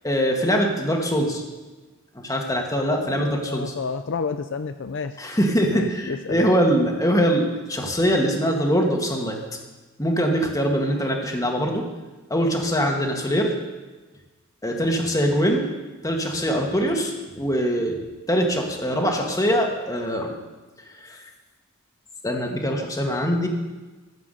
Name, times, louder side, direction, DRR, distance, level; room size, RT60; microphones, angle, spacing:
voice 1, 0.0-1.4 2.1-3.7 5.2-9.4 10.0-11.8 12.3-13.5 14.6-15.6 16.0-18.0 18.3-20.3 21.0-21.2 22.2-23.5, equal, 15° left, 1 dB, 1.7 m, -23 dB
voice 2, 3.0-5.1 5.7-6.5, left 5 dB, 60° left, 9 dB, 0.5 m, -30 dB
14.0 x 7.4 x 7.8 m, 1.2 s
head